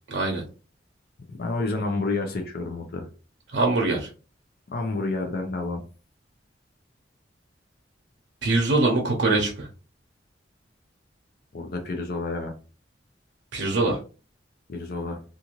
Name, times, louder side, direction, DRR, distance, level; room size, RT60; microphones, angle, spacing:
voice 1, 0.1-0.4 3.5-4.1 8.4-9.7 13.5-14.0, right 2 dB, 75° right, 0 dB, 0.6 m, -23 dB
voice 2, 1.3-3.1 4.7-5.8 11.5-12.5 14.7-15.2, left 3 dB, 55° left, 3 dB, 0.5 m, -29 dB
2.5 x 2.5 x 2.9 m, 0.35 s
head